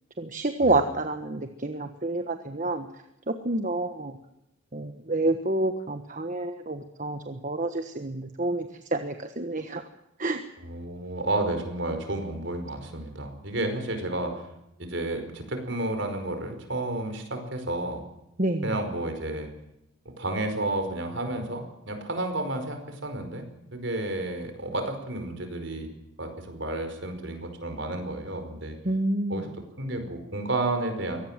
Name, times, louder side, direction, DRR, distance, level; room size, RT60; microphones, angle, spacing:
voice 1, 0.2-2.9 3.3-4.1 4.7-8.7 8.9-9.8 10.2-10.4 18.4-18.7 28.8-29.4, right 2 dB, 40° right, 7 dB, 1.3 m, -28 dB
voice 2, 10.6-14.4 14.8-18.0 18.6-19.5 20.2-23.4 23.7-25.9 26.2-28.8 29.3-29.5 29.8-31.2, right 2 dB, 60° right, 7 dB, 5.0 m, -31 dB
23.5 x 18.5 x 7.5 m, 0.85 s
head